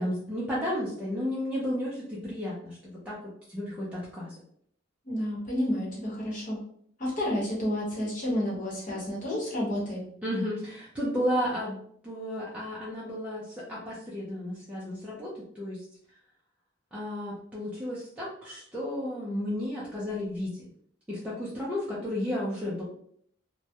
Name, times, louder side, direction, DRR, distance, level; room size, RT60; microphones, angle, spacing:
voice 1, 0.0-3.2 3.5-4.3 10.2-11.8 12.0-15.8 16.9-20.6 21.1-22.8, left 1 dB, 5° right, -7 dB, 0.4 m, -33 dB
voice 2, 5.1-6.6 7.0-10.0, left 1 dB, 40° left, -5 dB, 0.9 m, -30 dB
2.2 x 2.1 x 2.7 m, 0.64 s
head